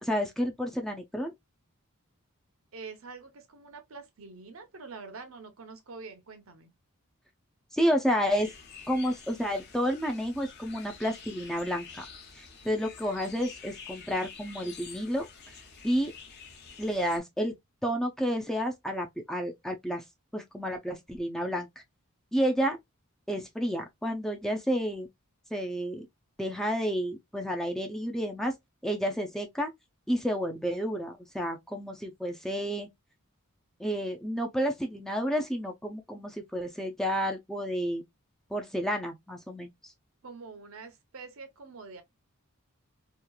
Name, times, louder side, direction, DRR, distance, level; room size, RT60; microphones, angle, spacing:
voice 1, 0.0-1.3 7.7-8.5 8.9-12.0 12.3-15.5 15.8-16.1 16.8-17.5 17.8-20.0 20.3-21.7 22.3-22.8 23.3-25.1 25.5-26.1 26.4-28.5 28.8-29.7 30.1-32.9 33.8-38.0 38.5-39.9, equal, ahead, 0.3 m, -30 dB
voice 2, 2.7-6.7 40.2-42.0, right 4 dB, 70° right, 0.7 m, -45 dB
sound 1, 8.3-17.2, left 5 dB, 50° left, 0.7 m, -48 dB
2.9 x 2.3 x 2.2 m
head